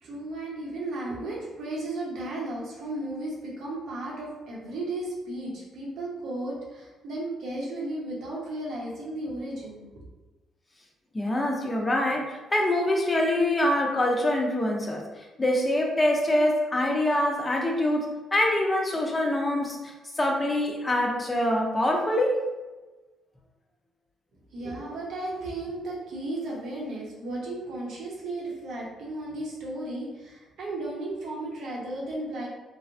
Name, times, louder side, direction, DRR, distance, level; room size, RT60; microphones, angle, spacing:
voice 1, 0.0-9.9 24.5-32.5, right 2 dB, 75° right, -4 dB, 0.9 m, -34 dB
voice 2, 11.1-15.0 15.4-22.4, left 1 dB, 20° left, 0 dB, 0.6 m, -25 dB
3.2 x 2.1 x 2.6 m, 1.2 s
cardioid pair, 90°, 0 cm